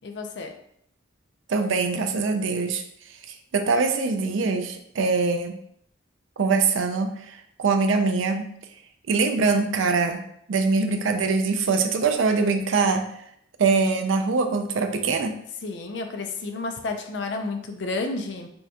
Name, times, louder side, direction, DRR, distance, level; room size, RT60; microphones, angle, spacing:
voice 1, 0.0-0.5 15.6-18.5, left 3 dB, 65° left, 5 dB, 0.5 m, -31 dB
voice 2, 1.5-2.8 3.5-5.6 6.4-8.5 9.1-10.2 10.5-13.1 13.6-15.4, right 4 dB, 85° right, 6 dB, 0.4 m, -23 dB
5.2 x 2.3 x 2.8 m, 0.70 s
head